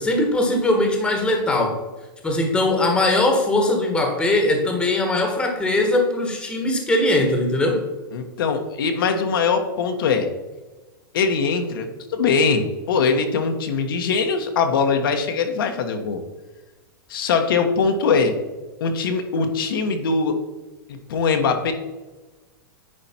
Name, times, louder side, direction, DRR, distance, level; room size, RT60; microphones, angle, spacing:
voice 1, 0.0-1.8 2.2-7.8, left 2 dB, 10° left, 2 dB, 1.4 m, -20 dB
voice 2, 8.1-10.3 11.1-16.2 17.1-18.3 18.8-20.4 20.9-21.7, left 5 dB, 75° left, 5 dB, 1.3 m, -22 dB
9.9 x 4.8 x 4.4 m, 1.2 s
supercardioid pair, 150°, 12 cm